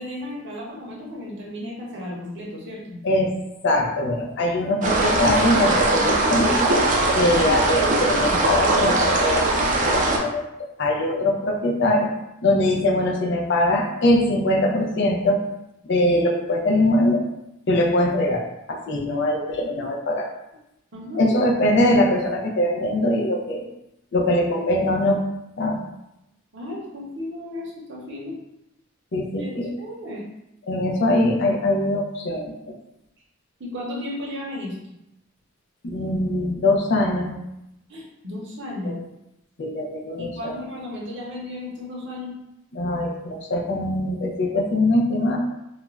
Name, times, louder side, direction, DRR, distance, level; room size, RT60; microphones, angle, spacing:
voice 1, 0.0-2.8 20.9-21.3 26.5-28.4 29.4-30.2 33.6-34.7 37.9-39.0 40.2-42.3, left 1 dB, 60° right, -4 dB, 0.7 m, -34 dB
voice 2, 3.6-6.5 7.1-10.4 10.8-12.1 12.4-15.4 15.8-17.2 17.7-20.3 21.2-23.7 24.1-25.2 25.6-25.8 29.1-29.7 30.7-32.5 35.9-37.3 38.8-38.9 39.6-40.6 42.7-45.4, left 1 dB, 60° left, 1 dB, 0.4 m, -22 dB
sound 1, 4.8-10.2, right 2 dB, 40° right, 0.4 m, -20 dB
2.4 x 2.1 x 3.1 m, 0.87 s
head